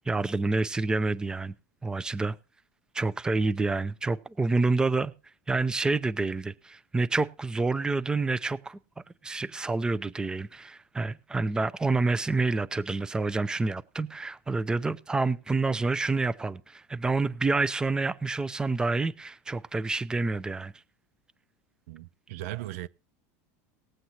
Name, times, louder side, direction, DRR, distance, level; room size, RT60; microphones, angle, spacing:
voice 1, 0.1-1.5 1.8-2.3 2.9-5.1 5.5-8.8 9.2-20.7, right 3 dB, 10° right, 0.5 m, -28 dB
voice 2, 21.9-22.9, right 15 dB, 75° right, 0.4 m, -37 dB
19.5 x 7.8 x 2.9 m
supercardioid pair, 125°, 8 cm